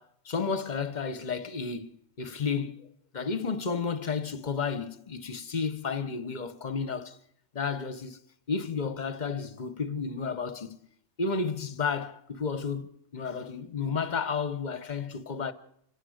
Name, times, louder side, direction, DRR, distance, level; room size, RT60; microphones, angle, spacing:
voice 1, 0.0-2.9 3.1-7.2 7.5-8.2 8.5-10.8 11.2-15.5, left 5 dB, 40° left, 0.9 m, -32 dB
26.5 x 15.5 x 6.4 m
omnidirectional pair, 1.4 m